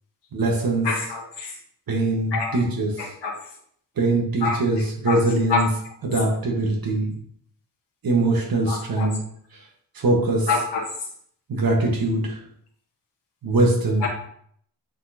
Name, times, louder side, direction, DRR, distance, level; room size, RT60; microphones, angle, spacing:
voice 1, 0.3-0.9 1.9-3.1 4.0-5.7 6.0-7.1 8.0-9.2 9.5-9.6 9.9-10.5 11.5-12.4 13.4-14.1, right 2 dB, 55° right, 0 dB, 1.5 m, -22 dB
voice 2, 0.8-1.5 2.3-2.6 3.0-3.3 4.4-4.6 5.1-5.2 5.5-5.6 8.7-9.1 10.5-10.8 14.0-14.1, left 5 dB, 75° left, -2 dB, 1.3 m, -26 dB
9.1 x 4.0 x 2.9 m, 0.65 s
cardioid pair, 80°, 41 cm